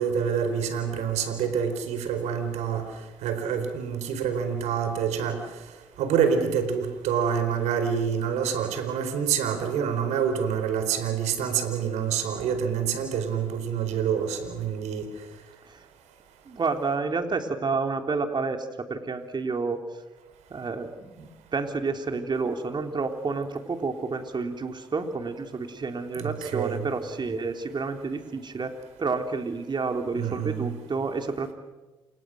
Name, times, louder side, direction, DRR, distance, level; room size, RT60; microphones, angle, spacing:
voice 1, 0.0-2.8 3.2-5.4 6.0-15.0 26.2-26.9 30.1-30.7, right 7 dB, 75° right, 8 dB, 4.5 m, -27 dB
voice 2, 16.5-19.8 20.5-28.7 29.0-31.5, right 4 dB, 40° right, 6 dB, 3.6 m, -30 dB
28.5 x 28.0 x 6.5 m, 1.2 s
hypercardioid pair, 50°, 12 cm